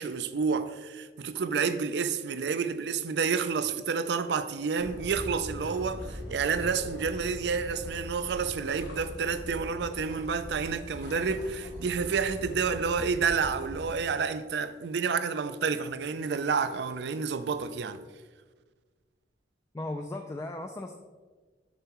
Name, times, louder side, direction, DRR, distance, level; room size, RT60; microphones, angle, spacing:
voice 1, 0.0-18.0, right 5 dB, 65° right, 0.4 m, -29 dB
sound 1, 4.8-13.9, equal, 70° left, 1.3 m, -41 dB
voice 2, 19.7-21.0, left 2 dB, 15° left, 0.3 m, -36 dB
6.7 x 6.7 x 3.0 m
head